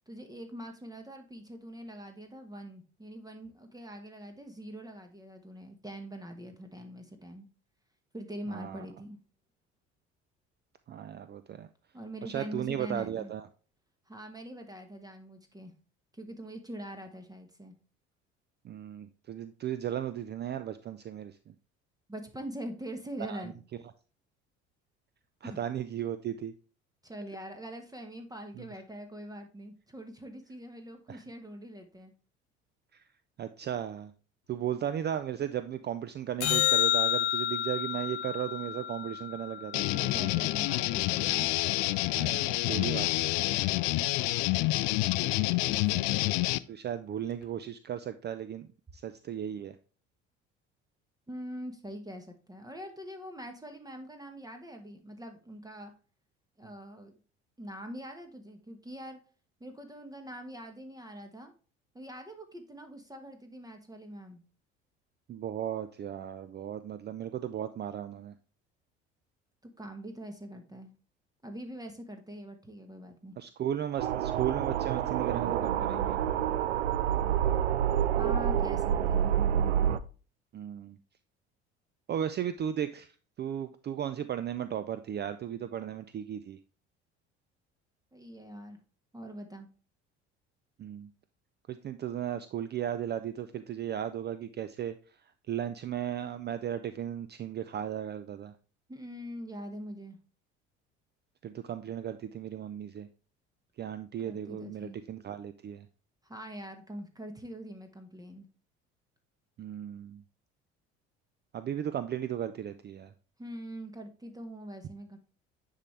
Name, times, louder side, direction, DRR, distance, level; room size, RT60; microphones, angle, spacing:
voice 1, 0.1-7.5 8.1-9.2 11.9-13.3 14.1-15.7 16.1-17.8 22.1-23.5 25.4-25.6 27.0-32.1 39.9-41.5 45.6-46.3 51.3-55.9 56.6-57.2 57.6-59.2 59.6-61.5 61.9-64.4 69.8-70.9 71.4-73.4 78.1-79.5 88.1-88.8 89.1-89.7 98.9-100.2 104.2-105.0 106.2-108.5 113.4-115.2, equal, 10° right, 6 dB, 1.2 m, -43 dB
voice 2, 8.5-8.9 10.9-11.7 12.2-13.5 18.6-21.5 23.3-23.5 25.4-26.5 28.6-28.7 31.1-31.2 32.9-33.0 33.4-34.1 34.5-39.8 42.1-43.5 46.7-48.7 48.9-49.8 65.3-68.3 73.4-76.2 80.5-81.0 82.1-83.1 83.4-86.6 90.8-91.1 91.7-95.0 95.5-98.5 101.4-103.1 103.8-105.9 109.6-110.2 111.5-113.1, right 10 dB, 30° right, 12 dB, 0.5 m, -35 dB
sound 1, 36.4-40.9 47.4-47.5, left 13 dB, 80° left, 0.9 m, -30 dB
sound 2, 39.7-46.6, left 19 dB, 55° left, 0.5 m, -28 dB
sound 3, 74.0-80.0, right 9 dB, 85° right, 0.5 m, -28 dB
9.8 x 3.7 x 3.2 m, 0.37 s
figure-of-eight pair, 60°, 33 cm